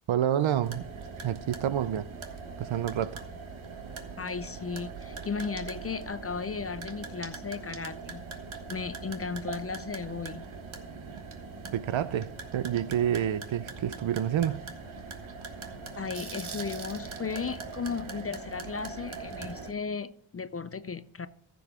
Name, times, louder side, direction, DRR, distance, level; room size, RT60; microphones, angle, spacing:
voice 1, 0.1-0.9 1.2-2.1 2.6-3.2 11.7-14.6, right 10 dB, 75° right, 0.6 m, -28 dB
sound 1, 0.6-19.7, right 4 dB, 90° right, 1.4 m, -41 dB
voice 2, 4.2-8.2 8.7-10.5 15.9-21.3, left 5 dB, 35° left, 0.4 m, -35 dB
15.0 x 6.9 x 3.6 m
wide cardioid pair, 110°, 47 cm